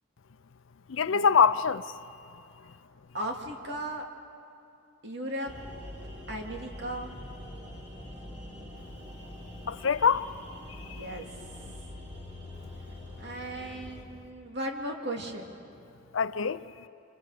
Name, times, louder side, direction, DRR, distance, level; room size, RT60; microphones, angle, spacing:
voice 1, 0.9-1.8 9.7-10.3 16.1-16.6, left 6 dB, 80° left, 0.5 m, -24 dB
voice 2, 3.1-4.0 5.0-5.5 6.3-7.1 10.8-11.3 13.2-15.6, right 1 dB, 60° right, 2.4 m, -36 dB
sound 1, 5.5-14.0, left 1 dB, 30° right, 4.8 m, -44 dB
29.5 x 26.5 x 5.0 m
head